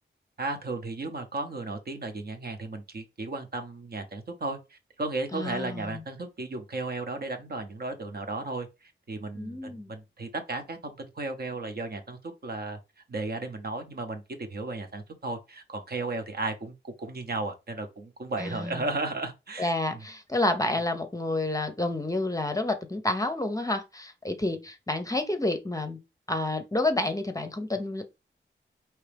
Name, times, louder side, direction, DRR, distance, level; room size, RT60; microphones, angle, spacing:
voice 1, 0.4-12.8 13.1-20.0, right 2 dB, 50° right, 0.9 m, -35 dB
voice 2, 5.3-6.0 9.4-9.9 18.4-18.9 19.6-26.0 26.3-28.0, left 2 dB, 15° left, 0.7 m, -29 dB
4.7 x 3.0 x 3.4 m
wide cardioid pair, 90°, 21 cm